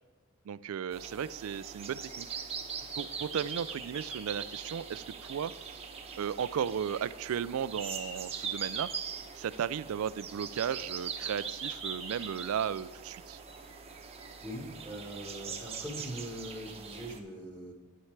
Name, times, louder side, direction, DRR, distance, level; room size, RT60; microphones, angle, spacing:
voice 1, 0.5-2.3 3.0-5.5 6.2-8.9 9.4-13.4, right 8 dB, 65° right, 17 dB, 0.3 m, -35 dB
sound 1, 0.9-17.2, right 6 dB, 30° right, 0.8 m, -41 dB
voice 2, 14.4-17.7, equal, 5° left, -1 dB, 1.5 m, -42 dB
10.0 x 9.5 x 3.3 m, 1.3 s
head